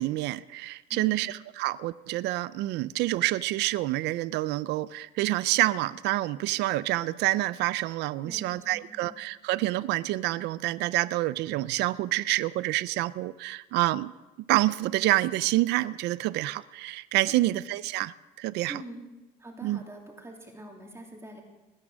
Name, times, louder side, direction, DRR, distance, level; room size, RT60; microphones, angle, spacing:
voice 1, 0.0-14.1 14.5-18.8 19.6-19.8, right 17 dB, 85° right, 18 dB, 0.5 m, -27 dB
voice 2, 0.9-1.3 8.2-9.1 17.3-17.5 18.7-19.1 19.4-21.4, right 1 dB, 15° right, 0 dB, 2.9 m, -44 dB
20.5 x 9.7 x 6.3 m, 1.1 s
cardioid pair, 110°, 17 cm